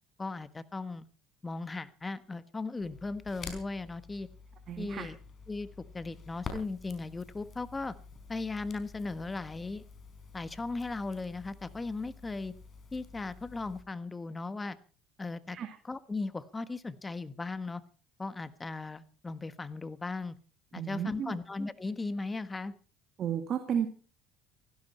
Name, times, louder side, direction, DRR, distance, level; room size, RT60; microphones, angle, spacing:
voice 1, 0.2-1.1 1.4-4.3 4.8-5.2 5.5-5.7 5.9-7.9 8.3-9.8 10.3-12.5 12.9-14.8 15.2-15.6 15.8-17.8 18.2-20.4 20.7-22.7, left 3 dB, 20° left, 13 dB, 1.4 m, -37 dB
Crackle, 2.8-13.8, left 4 dB, 40° left, 4.9 m, -48 dB
voice 2, 4.7-5.1 15.5-15.8 20.8-21.4 23.2-23.9, right 8 dB, 50° right, 7 dB, 2.2 m, -33 dB
17.5 x 16.0 x 4.4 m, 0.39 s
supercardioid pair, 95°, 0 cm